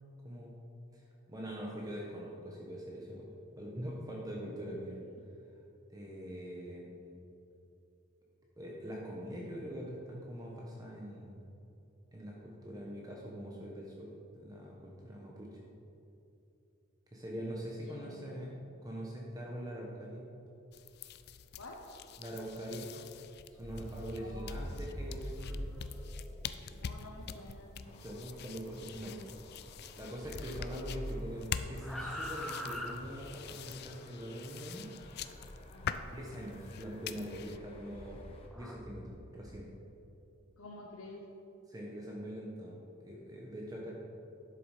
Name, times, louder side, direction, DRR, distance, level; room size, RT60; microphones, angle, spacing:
voice 1, 0.2-0.6 0.9-3.3 3.6-5.0 5.9-7.2 8.6-11.4 12.1-14.1 14.3-15.6 17.1-18.5 18.8-20.3 22.2-22.9 23.6-25.7 27.8-29.3 29.9-34.9 36.1-38.3 38.5-39.7 41.7-42.8 43.0-43.9, equal, 15° right, -3 dB, 1.1 m, -43 dB
voice 2, 17.8-18.5 21.6-21.8 24.2-24.6 26.7-27.8 35.7-36.1 40.6-41.3, left 2 dB, 75° left, -1 dB, 1.0 m, -50 dB
sound 1, 20.7-37.6, left 7 dB, 50° left, 0.4 m, -45 dB
sound 2, 23.5-29.9 30.2-33.6 35.0-36.3 36.9-39.5, equal, ahead, 0.8 m, -45 dB
sound 3, 27.8-38.5, left 1 dB, 25° left, 1.1 m, -58 dB
12.0 x 6.8 x 5.0 m, 2.7 s
head